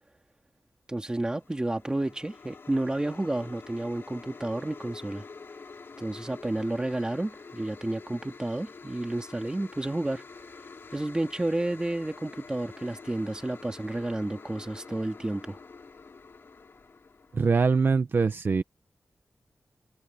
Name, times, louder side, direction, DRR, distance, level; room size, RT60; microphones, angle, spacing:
voice 1, 0.9-5.2 6.0-10.2 10.9-15.6, right 1 dB, 15° right, 2.3 m, -31 dB
sound 1, 1.2-17.6, left 4 dB, 55° left, 2.9 m, -47 dB
voice 2, 17.3-18.6, right 4 dB, 50° right, 1.0 m, -23 dB
wide cardioid pair, 130°, 5 cm